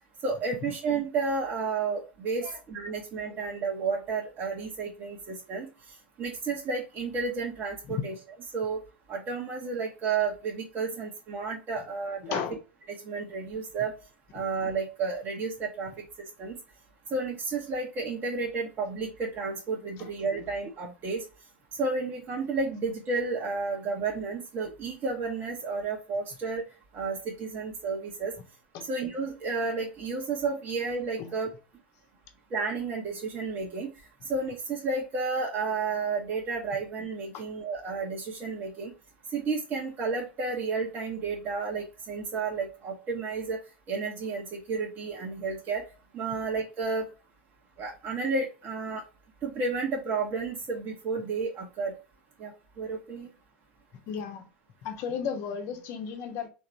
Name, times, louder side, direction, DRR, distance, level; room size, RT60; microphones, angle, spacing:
voice 1, 0.2-8.1 8.5-8.8 9.1-12.4 12.9-13.9 14.3-16.6 17.1-21.2 21.8-26.6 26.9-28.3 28.8-31.5 32.5-33.9 34.3-38.9 39.3-43.6 43.9-45.8 46.1-47.1 47.8-49.0 49.4-51.9 52.4-53.3, right 4 dB, 35° right, 1.0 m, -32 dB
voice 2, 12.2-12.6 20.0-20.1 20.4-20.5 28.7-28.9 31.2-31.3 37.3-37.4 54.1-54.5 54.8-56.5, left 7 dB, 50° left, 1.0 m, -34 dB
3.8 x 2.7 x 4.4 m
figure-of-eight pair, 85°, 6 cm